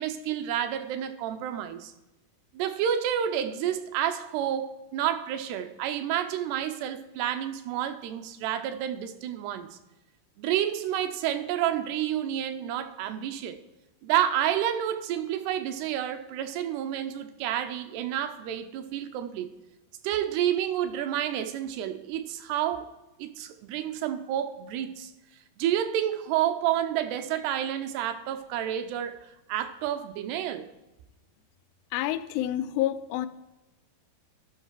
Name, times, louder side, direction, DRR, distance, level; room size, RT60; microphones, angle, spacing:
voice 1, 0.0-1.9 2.5-9.7 10.4-13.6 14.0-19.5 20.0-22.9 23.2-25.1 25.6-29.2 29.5-30.7, right 10 dB, 90° right, 2.8 m, -29 dB
voice 2, 31.9-33.3, left 13 dB, 85° left, 2.7 m, -28 dB
12.5 x 5.7 x 4.7 m
omnidirectional pair, 4.7 m